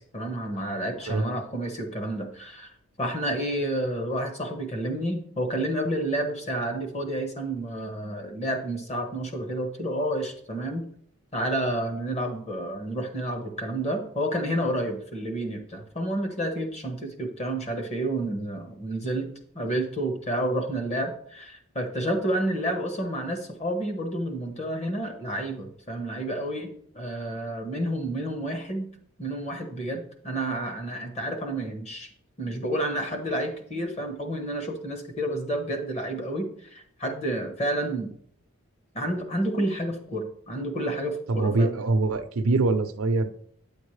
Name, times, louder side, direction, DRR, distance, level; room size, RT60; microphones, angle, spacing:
voice 1, 0.0-2.7 3.0-10.8 11.3-19.3 19.5-28.9 29.2-32.1 32.4-38.1 38.9-41.8, right 1 dB, 30° left, 5 dB, 1.1 m, -30 dB
voice 2, 41.3-43.3, right 3 dB, 70° right, 10 dB, 0.6 m, -24 dB
9.7 x 7.1 x 3.2 m, 0.63 s
head